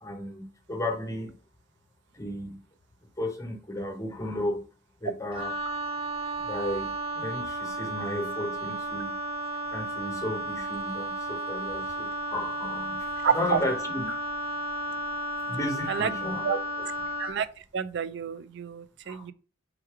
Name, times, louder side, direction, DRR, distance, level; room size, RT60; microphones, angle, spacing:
voice 1, 0.0-1.3 2.1-2.6 3.2-4.6 5.0-5.5 6.4-9.2 9.7-14.1 14.9-15.0 15.5-16.6 17.0-17.1 19.1-19.2, left 1 dB, 15° left, 0.7 m, -34 dB
Wind instrument woodwind instrument, 5.3-17.4, right 1 dB, 30° right, 0.7 m, -33 dB
voice 2, 13.2-13.6 15.9-16.1 16.4-16.6 17.2-17.5 17.7-19.3, right 7 dB, 60° right, 0.4 m, -28 dB
3.6 x 3.2 x 4.6 m
head